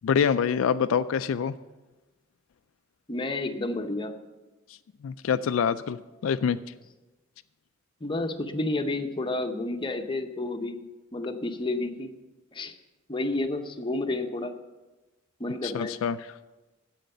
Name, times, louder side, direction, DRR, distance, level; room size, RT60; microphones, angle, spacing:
voice 1, 0.0-1.5 5.0-6.6 15.6-16.2, left 7 dB, 75° left, 11 dB, 0.3 m, -25 dB
voice 2, 3.1-4.1 8.0-10.8 11.1-12.1 12.5-12.7 13.1-14.5 15.4-15.9, left 2 dB, 25° left, 5 dB, 0.7 m, -30 dB
9.0 x 7.9 x 6.8 m, 1.1 s
head